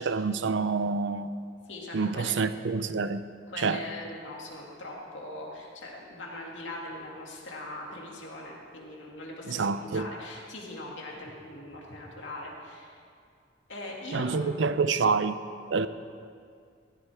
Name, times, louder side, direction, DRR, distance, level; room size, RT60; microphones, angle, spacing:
voice 1, 0.0-1.3 1.9-3.2 3.6-3.8 9.5-10.1 14.1-15.4 15.7-15.9, right 4 dB, 75° right, 12 dB, 0.5 m, -27 dB
voice 2, 1.7-2.3 3.5-12.9 13.7-14.8, left 1 dB, 85° left, -2 dB, 2.3 m, -41 dB
14.0 x 13.0 x 3.5 m, 2.2 s
head